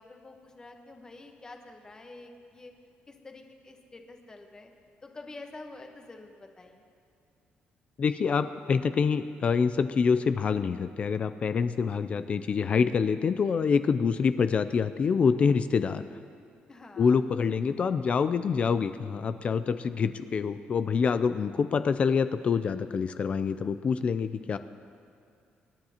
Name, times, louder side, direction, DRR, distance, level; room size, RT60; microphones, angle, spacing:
voice 1, 0.0-2.7 3.1-4.7 5.0-6.8 16.7-17.2, left 2 dB, 20° left, 4 dB, 1.1 m, -47 dB
voice 2, 8.0-16.0 17.0-24.6, left 5 dB, 35° left, 11 dB, 0.3 m, -26 dB
25.5 x 10.5 x 2.9 m, 2.4 s
cardioid pair, 150°, 4 cm